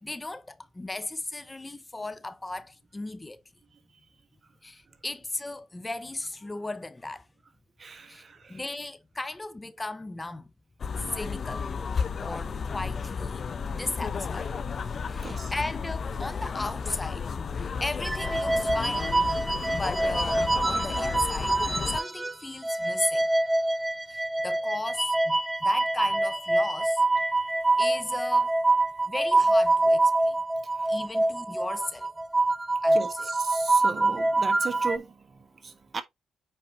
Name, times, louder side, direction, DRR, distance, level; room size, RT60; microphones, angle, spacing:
voice 1, 0.0-3.4 4.6-7.3 8.1-8.2 8.5-10.5 11.0-11.7 12.2-13.5 13.7-14.5 15.1-19.2 19.7-23.3 24.1-27.0 27.8-28.5 29.1-30.4 30.9-32.1 32.8-33.3, left 2 dB, 20° left, 0.9 m, -36 dB
voice 2, 7.8-8.6 15.1-15.5 30.8-30.9 32.9-36.0, right 5 dB, 45° right, 1.4 m, -37 dB
sound 1, 10.8-22.0, left 5 dB, 55° left, 0.8 m, -33 dB
sound 2, 18.0-22.3 22.6-35.0, right 2 dB, 15° right, 0.7 m, -25 dB
9.0 x 4.4 x 2.8 m
supercardioid pair, 55°, 0 cm